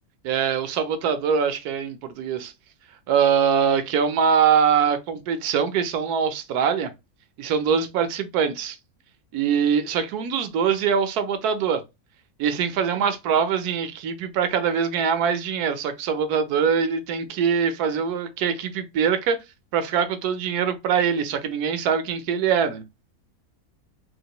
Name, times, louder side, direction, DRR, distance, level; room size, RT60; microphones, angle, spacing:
voice 1, 0.2-2.5 3.1-6.9 7.4-8.8 9.3-11.8 12.4-19.4 19.7-22.8, right 7 dB, 85° right, 1.2 m, -23 dB
4.0 x 2.6 x 2.9 m
omnidirectional pair, 1.6 m